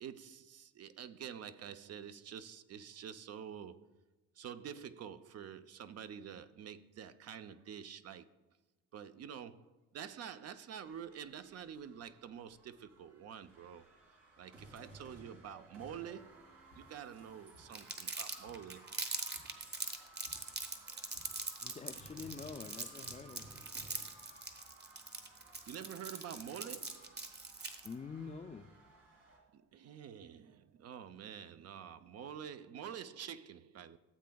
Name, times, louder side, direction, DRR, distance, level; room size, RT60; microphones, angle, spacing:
voice 1, 0.0-4.0 4.4-8.3 8.9-13.8 14.4-16.4 16.7-18.9 25.7-27.3 29.3-34.0, right 8 dB, 55° right, 0.5 m, -48 dB
sound 1, 10.8-29.4, right 2 dB, 90° right, 2.7 m, -58 dB
Crumpling crinkling, 17.7-27.9, right 3 dB, 35° right, 1.1 m, -42 dB
voice 2, 21.6-23.6 27.8-28.7, left 5 dB, 25° left, 0.3 m, -46 dB
14.0 x 7.7 x 2.3 m
cardioid pair, 90°, 30 cm